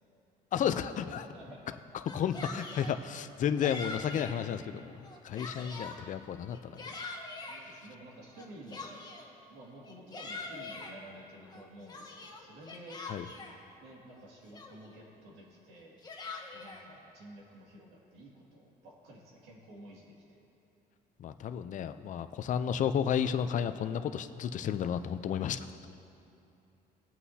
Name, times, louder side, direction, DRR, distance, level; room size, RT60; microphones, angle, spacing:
voice 1, 0.5-1.3 2.1-6.9 13.1-13.3 21.2-25.7, left 8 dB, 50° left, 10 dB, 0.5 m, -32 dB
voice 2, 1.3-1.6 5.6-5.7 7.5-8.9 9.5-13.3 13.8-16.0 16.5-20.4, right 1 dB, 85° right, -3 dB, 2.3 m, -52 dB
Yell, 1.9-3.0 3.6-4.4 4.9-6.0 6.5-7.6 8.4-9.3 9.8-10.9 11.5-13.6 14.2-14.3 14.5-15.0 15.8-16.8, left 3 dB, 25° left, 1.2 m, -43 dB
20.0 x 8.3 x 2.8 m, 2.7 s
cardioid pair, 110°, 17 cm